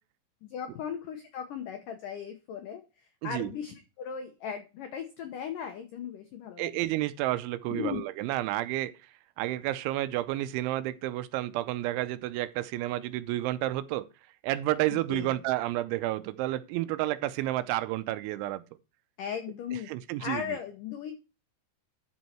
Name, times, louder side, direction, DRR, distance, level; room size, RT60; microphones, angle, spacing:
voice 1, 0.4-6.8 7.7-8.0 15.1-15.4 19.2-19.9 20.2-21.1, left 8 dB, 85° left, 1.8 m, -37 dB
voice 2, 3.2-3.5 6.6-8.9 9.4-14.1 14.4-18.6 19.7-20.6, right 15 dB, 90° right, 3.1 m, -30 dB
12.5 x 5.5 x 4.4 m
omnidirectional pair, 5.3 m